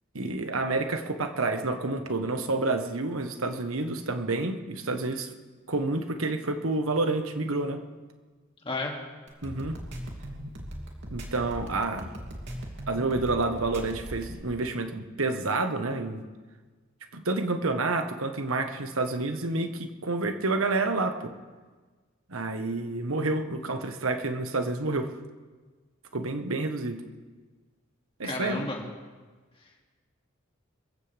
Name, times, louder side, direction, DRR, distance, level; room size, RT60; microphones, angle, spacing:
voice 1, 0.1-5.3 5.7-7.8 9.4-9.8 11.1-12.1 12.9-16.2 17.1-21.3 22.3-25.1 26.1-27.0 28.2-28.7, right 2 dB, 80° right, 6 dB, 1.4 m, -29 dB
voice 2, 8.6-8.9 28.2-28.8, left 2 dB, 25° left, -1 dB, 2.6 m, -32 dB
sound 1, 9.3-14.4, equal, 60° right, 2.9 m, -39 dB
26.5 x 15.5 x 3.5 m, 1.4 s
head